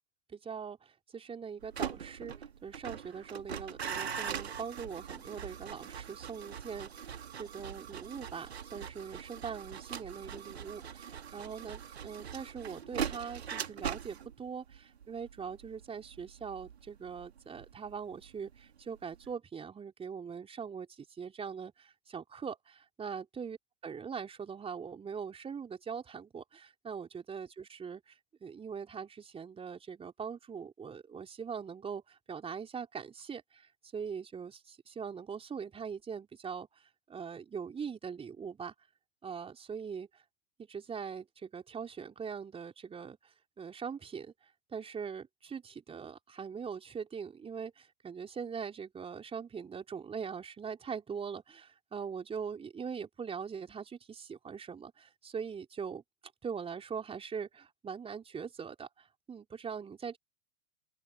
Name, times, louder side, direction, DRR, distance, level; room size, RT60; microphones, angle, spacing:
voice 1, 0.3-2.3 2.6-23.6 23.8-28.1 28.4-36.7 37.1-38.7 39.2-40.1 40.6-43.2 43.6-44.3 44.7-56.0 56.4-60.2, right 6 dB, 15° right, 4.1 m, -42 dB
sound 1, 1.6-18.6 18.9-19.3, right 8 dB, 70° right, 2.6 m, -42 dB
open air
figure-of-eight pair, 95°, 33 cm